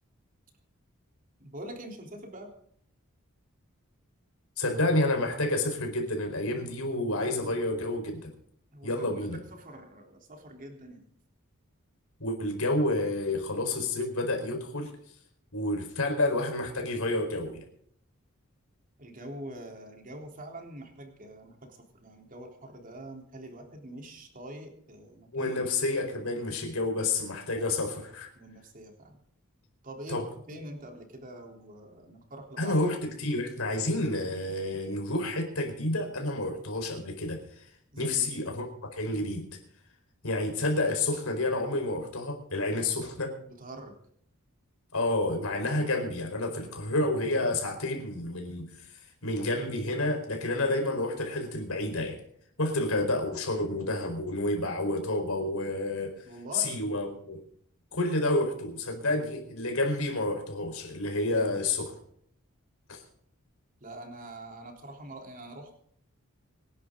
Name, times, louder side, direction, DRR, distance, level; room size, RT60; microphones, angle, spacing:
voice 1, 1.4-2.5 8.7-11.1 19.0-25.6 27.6-27.8 28.3-29.1 29.8-32.8 37.9-38.4 43.5-44.0 50.6-50.7 52.7-53.0 56.2-56.8 61.3-61.4 63.8-65.8, right 1 dB, 40° right, 2 dB, 3.7 m, -44 dB
voice 2, 4.6-8.3 8.8-9.4 12.2-14.9 15.5-17.6 25.3-28.3 30.1-30.2 32.6-37.6 38.0-39.6 40.2-43.3 44.9-48.9 49.2-52.2 52.6-56.2 56.5-57.4 57.9-61.9 62.9-63.0, left 2 dB, 75° left, 3 dB, 4.6 m, -29 dB
26.0 x 11.0 x 3.9 m, 0.66 s
head